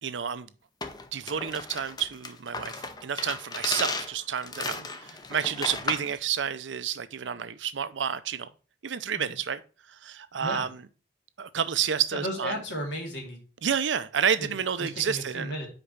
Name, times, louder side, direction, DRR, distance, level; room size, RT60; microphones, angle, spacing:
voice 1, 0.0-0.5 1.1-8.5 8.8-9.6 9.9-10.7 11.4-12.5 13.6-15.5, right 8 dB, 85° right, 0.6 m, -30 dB
sound 1, 0.8-6.2, left 3 dB, 20° left, 0.6 m, -35 dB
voice 2, 10.3-10.7 12.1-13.4 14.4-14.5 14.8-15.7, equal, 80° left, 2.6 m, -34 dB
5.3 x 4.9 x 5.6 m
head